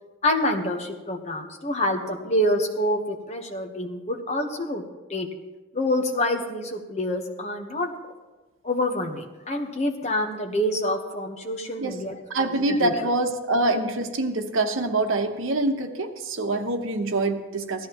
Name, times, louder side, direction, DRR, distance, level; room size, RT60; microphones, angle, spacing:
voice 1, 0.2-4.8 5.1-5.3 5.7-7.9 8.6-13.1, left 1 dB, 30° left, 3 dB, 1.1 m, -27 dB
voice 2, 12.3-17.9, right 2 dB, 80° right, 6 dB, 1.0 m, -25 dB
16.5 x 13.0 x 3.0 m, 1.2 s
head